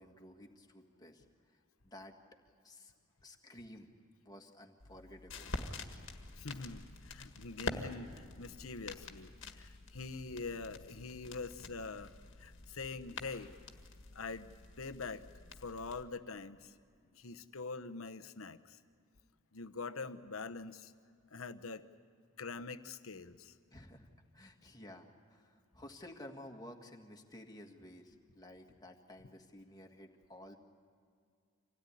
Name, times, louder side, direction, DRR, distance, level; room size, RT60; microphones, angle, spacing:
voice 1, 0.0-1.6 1.8-2.2 2.6-2.9 3.2-3.9 4.3-5.5 23.7-30.6, left 1 dB, 20° left, 3 dB, 1.8 m, -53 dB
sound 1, 4.8-16.0, left 3 dB, 65° left, 1.7 m, -47 dB
voice 2, 6.4-12.1 12.4-13.5 14.1-14.5 14.8-15.2 15.6-16.7 17.1-18.8 19.5-20.9 21.3-21.8 22.4-23.5, left 4 dB, 85° left, 9 dB, 1.0 m, -44 dB
26.0 x 17.0 x 9.9 m, 2.2 s
head